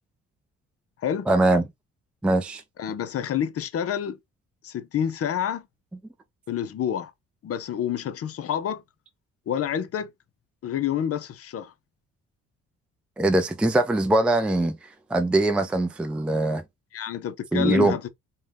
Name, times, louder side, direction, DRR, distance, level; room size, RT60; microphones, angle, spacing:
voice 1, 1.3-1.6 2.2-2.6 13.2-16.6 17.5-18.0, right 2 dB, 5° right, 0.4 m, -22 dB
voice 2, 2.8-4.2 4.6-5.7 6.5-7.1 7.4-8.8 9.5-10.1 10.6-11.7 16.9-18.1, left 9 dB, 50° left, 0.6 m, -28 dB
2.6 x 2.2 x 3.3 m
cardioid pair, 90°, 30 cm